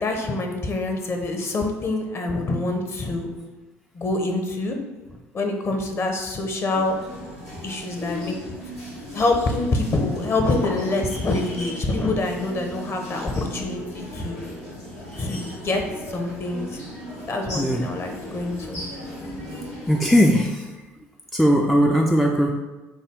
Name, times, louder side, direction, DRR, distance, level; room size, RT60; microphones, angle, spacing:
voice 1, 0.0-3.3 3.9-4.8 5.3-7.0 7.6-8.3 9.1-14.4 15.2-15.8 16.1-16.7 17.3-18.9, left 2 dB, 30° left, 3 dB, 0.8 m, -25 dB
sound 1, 6.7-20.4, left 1 dB, 80° left, 1.1 m, -36 dB
voice 2, 17.5-17.9 19.9-20.7 21.3-22.5, equal, ahead, 1 dB, 0.4 m, -19 dB
6.2 x 2.3 x 3.5 m, 1.1 s
figure-of-eight pair, 55°, 8 cm